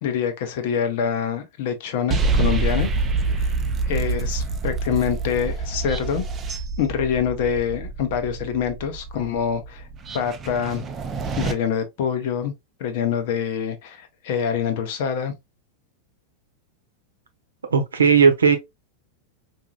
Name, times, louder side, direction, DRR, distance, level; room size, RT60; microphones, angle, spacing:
voice 1, 0.0-2.9 3.3-3.5 3.9-9.8 10.1-10.8 11.4-12.5 12.8-15.4, left 8 dB, 50° left, 0.8 m, -25 dB
sound 1, 2.1-11.5, right 3 dB, 25° right, 0.6 m, -26 dB
voice 2, 17.7-18.6, right 6 dB, 70° right, 0.8 m, -16 dB
4.7 x 2.6 x 2.3 m
figure-of-eight pair, 90°, 0 cm